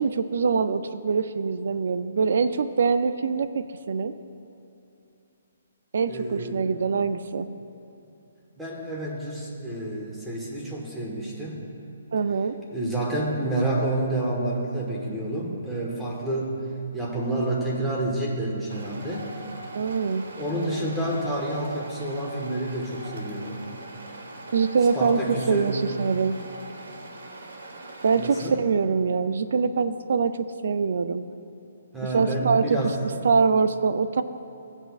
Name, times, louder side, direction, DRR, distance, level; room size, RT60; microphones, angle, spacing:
voice 1, 0.0-4.1 5.9-7.5 12.1-12.5 19.7-20.2 24.5-26.4 28.0-31.2 32.1-32.8 33.2-34.2, right 5 dB, 65° right, 12 dB, 0.3 m, -24 dB
voice 2, 6.1-6.6 8.6-11.6 12.7-16.6 16.9-19.3 20.4-23.6 24.9-25.8 28.2-28.6 31.9-32.9, right 1 dB, 5° right, -4 dB, 1.2 m, -29 dB
sound 1, 18.7-28.5, right 2 dB, 80° right, 1.1 m, -42 dB
15.5 x 8.0 x 2.4 m, 2.7 s
hypercardioid pair, 165°, 0 cm